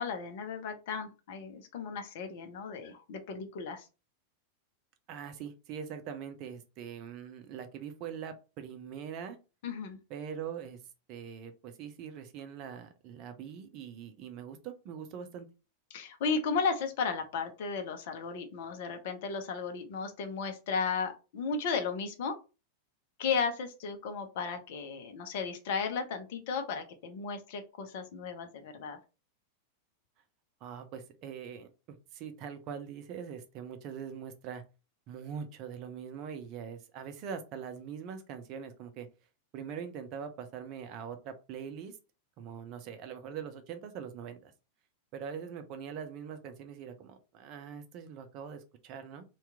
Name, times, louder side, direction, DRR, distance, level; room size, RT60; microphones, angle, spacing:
voice 1, 0.0-3.9 9.6-10.0 15.9-22.4 23.2-29.0, left 5 dB, 50° left, 6 dB, 0.6 m, -35 dB
voice 2, 5.1-9.4 10.1-10.8 11.1-15.5 30.6-31.7 32.1-34.6 35.1-39.1 39.5-42.0 42.4-44.5 45.1-49.2, right 7 dB, 40° right, 8 dB, 0.6 m, -42 dB
2.8 x 2.3 x 3.4 m, 0.31 s
figure-of-eight pair, 90°, 0 cm